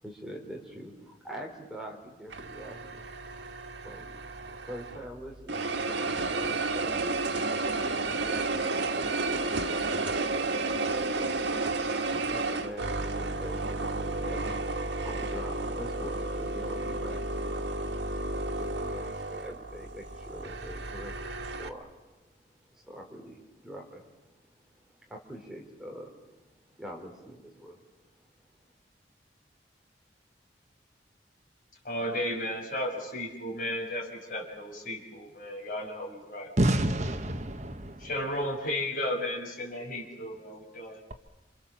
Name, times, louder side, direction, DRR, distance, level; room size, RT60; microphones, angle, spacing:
voice 1, 0.0-3.0 3.8-4.2 4.5-7.3 7.9-8.4 8.7-8.9 9.7-10.3 11.1-11.8 12.2-17.6 18.5-22.2 22.6-24.3 24.7-28.0, equal, 5° right, 4.2 m, -44 dB
sound 1, 2.3-5.1 5.5-21.7, right 3 dB, 85° right, 1.8 m, -32 dB
voice 2, 31.8-36.5 38.0-41.0, left 1 dB, 50° left, 6.4 m, -34 dB
voice 3, 36.6-38.0, right 1 dB, 40° right, 1.3 m, -27 dB
28.5 x 28.0 x 7.4 m
head